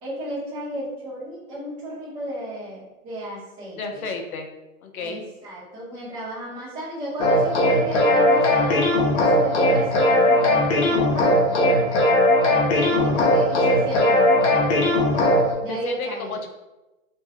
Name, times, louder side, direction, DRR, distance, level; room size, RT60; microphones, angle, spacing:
voice 1, 0.0-4.0 5.0-8.9 9.2-11.6 12.7-15.1 15.6-16.4, right 1 dB, 15° right, -9 dB, 0.7 m, -33 dB
voice 2, 3.8-4.5 4.8-5.3 12.3-12.6 15.7-16.5, left 3 dB, 75° left, 4 dB, 0.6 m, -32 dB
sound 1, 7.2-15.5, left 1 dB, 50° left, 0.8 m, -19 dB
2.5 x 2.1 x 3.4 m, 1.0 s
hypercardioid pair, 160°, 44 cm